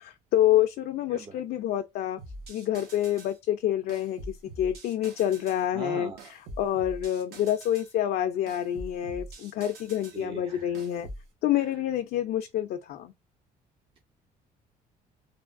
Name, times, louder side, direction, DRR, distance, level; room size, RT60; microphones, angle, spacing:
voice 1, 0.0-2.2 2.5-6.1 6.6-11.1 11.4-13.1, left 11 dB, 65° left, 0.4 m, -27 dB
voice 2, 1.1-1.4 5.7-6.3 10.1-10.7 11.6-11.7, right 4 dB, 30° right, 0.5 m, -40 dB
sound 1, 2.2-3.4 3.9-5.6 6.2-7.9 8.5-10.2 10.7-11.3, right 1 dB, 75° right, 1.0 m, -44 dB
3.3 x 2.2 x 2.4 m
cardioid pair, 110°, 17 cm